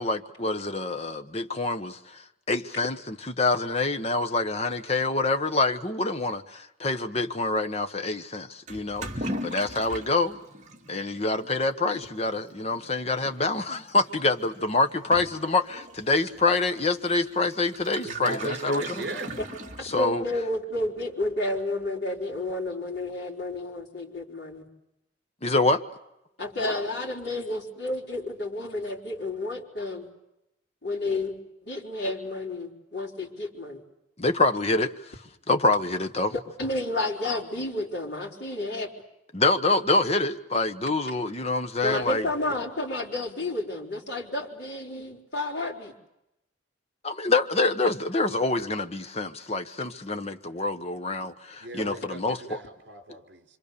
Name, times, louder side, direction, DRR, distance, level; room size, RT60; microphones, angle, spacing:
voice 1, 0.0-2.2 2.5-10.4 10.9-19.0 19.8-20.2 25.4-25.8 34.2-34.9 35.5-36.3 39.3-42.2 47.0-52.6, left 3 dB, 30° left, 8 dB, 1.2 m, -26 dB
Toilet flush / Liquid, 8.7-20.3, right 1 dB, 40° right, 2.5 m, -40 dB
voice 2, 18.0-19.4 51.6-53.4, right 2 dB, 60° right, 5 dB, 4.1 m, -37 dB
voice 3, 20.0-24.7 26.4-30.1 30.8-33.8 36.3-38.9 41.8-46.0, left 2 dB, 55° left, -2 dB, 4.5 m, -31 dB
26.0 x 26.0 x 6.9 m, 0.89 s
head